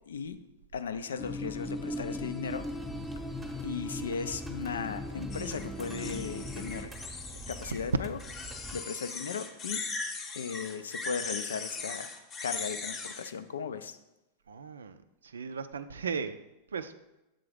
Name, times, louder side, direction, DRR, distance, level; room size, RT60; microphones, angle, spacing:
voice 1, 0.1-0.4 0.7-2.7 3.6-7.2 7.5-8.2 8.7-9.8 10.3-12.1 12.4-14.0, left 6 dB, 65° left, 11 dB, 0.4 m, -37 dB
sound 1, 1.2-6.9, left 1 dB, 10° left, 0.4 m, -38 dB
sound 2, 2.5-8.8, right 2 dB, 10° right, 0.9 m, -45 dB
sound 3, 5.3-7.8 8.2-13.3, left 4 dB, 30° left, 0.8 m, -39 dB
voice 2, 14.5-16.4 16.7-16.9, right 6 dB, 70° right, 12 dB, 0.4 m, -37 dB
7.5 x 3.8 x 4.8 m, 0.97 s
figure-of-eight pair, 90°, 0 cm